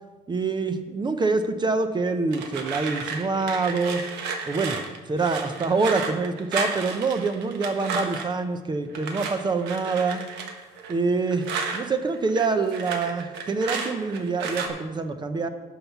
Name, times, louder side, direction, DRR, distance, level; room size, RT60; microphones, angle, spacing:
voice 1, 0.3-4.0 4.5-4.8 5.1-10.2 10.9-11.4 11.7-15.5, right 4 dB, 25° right, 9 dB, 0.6 m, -25 dB
sound 1, 2.3-8.4 8.9-11.8 12.1-14.7, right 4 dB, 90° right, 1.3 m, -33 dB
11.0 x 5.6 x 5.9 m, 1.3 s
cardioid pair, 110°, 17 cm